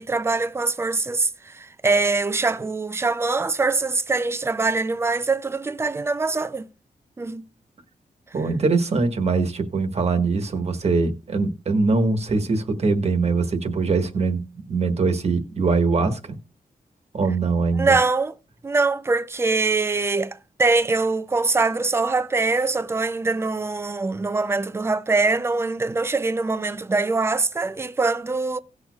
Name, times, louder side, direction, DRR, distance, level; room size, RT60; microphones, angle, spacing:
voice 1, 0.0-6.7 7.2-7.4 17.7-18.3 18.6-28.6, right 3 dB, 15° right, 0.5 m, -23 dB
voice 2, 8.3-14.4 14.7-16.3 17.1-17.9, right 4 dB, 45° right, 1.3 m, -22 dB
17.5 x 6.1 x 2.3 m
wide cardioid pair, 145°, 15 cm